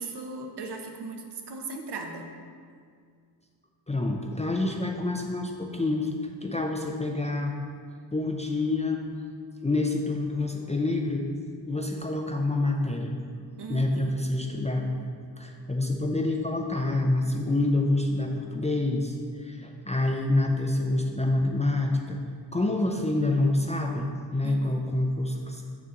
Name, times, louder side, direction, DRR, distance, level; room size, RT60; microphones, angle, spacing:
voice 1, 0.0-2.3 13.6-14.2 24.4-24.8, right 3 dB, 60° right, 2 dB, 0.9 m, -38 dB
voice 2, 3.9-6.1 6.4-7.6 8.1-9.0 9.6-11.3 11.6-13.2 13.7-14.9 15.4-22.2 22.5-25.6, left 2 dB, 15° left, 1 dB, 0.4 m, -27 dB
6.7 x 6.6 x 3.7 m, 2.1 s
wide cardioid pair, 110°, 45 cm